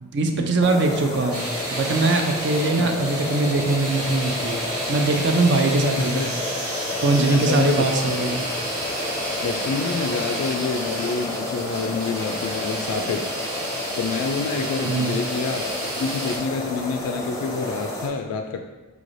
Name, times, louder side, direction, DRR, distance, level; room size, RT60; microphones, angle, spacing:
voice 1, 0.0-4.6 4.9-6.3 7.0-8.4 14.8-15.2, right 3 dB, 50° right, 4 dB, 0.4 m, -22 dB
sound 1, 0.6-18.1, left 2 dB, 15° left, 0.5 m, -31 dB
sound 2, 1.3-16.4, right 1 dB, 75° right, 0.9 m, -32 dB
voice 2, 6.0-6.3 7.1-8.2 9.4-13.3 14.0-18.6, left 4 dB, 90° left, 4 dB, 0.3 m, -28 dB
4.8 x 3.2 x 2.5 m, 1.2 s
head